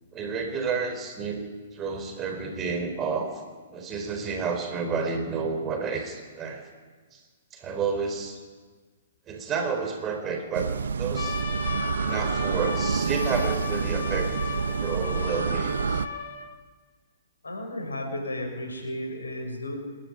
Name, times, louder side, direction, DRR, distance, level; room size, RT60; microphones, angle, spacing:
voice 1, 0.1-3.4 3.7-6.7 7.1-7.2 7.5-8.4 9.3-11.4 12.0-14.3 14.7-16.0, right 5 dB, 20° right, 5 dB, 4.3 m, -30 dB
sound 1, 10.5-16.1, right 6 dB, 65° right, 0.9 m, -28 dB
Trumpet, 11.1-16.5, left 6 dB, 60° left, 3.9 m, -35 dB
voice 2, 17.4-19.8, left 1 dB, 80° left, 4 dB, 6.6 m, -33 dB
27.0 x 13.0 x 10.0 m, 1.5 s
figure-of-eight pair, 120°, 0 cm